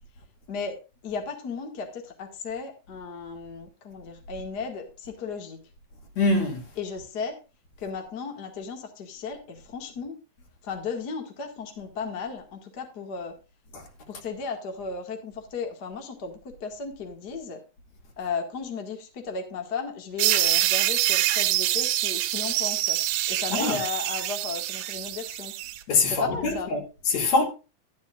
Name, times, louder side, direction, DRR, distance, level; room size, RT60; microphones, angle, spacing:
voice 1, 0.5-5.6 6.8-7.4 7.8-10.2 10.6-13.3 14.1-17.6 18.2-23.0 23.3-25.5 26.1-26.7, left 5 dB, 35° left, 1.9 m, -35 dB
voice 2, 6.2-6.6 13.7-13.8 23.5-23.8 25.9-26.8 27.1-27.4, left 3 dB, 55° left, 3.3 m, -23 dB
sound 1, 20.2-25.8, right 14 dB, 85° right, 2.4 m, -25 dB
12.5 x 11.5 x 2.4 m
omnidirectional pair, 4.0 m